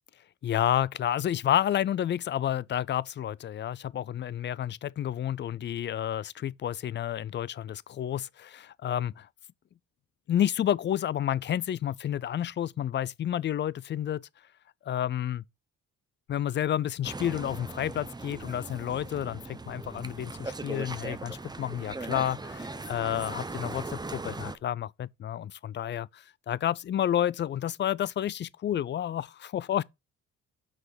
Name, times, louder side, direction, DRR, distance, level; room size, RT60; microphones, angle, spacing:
voice 1, 0.4-9.3 10.3-14.2 14.9-15.4 16.3-29.8, left 10 dB, 40° left, 0.4 m, -30 dB
sound 1, 17.0-24.6, right 3 dB, 15° right, 0.7 m, -39 dB
6.0 x 4.7 x 4.9 m
cardioid pair, 90°, 30 cm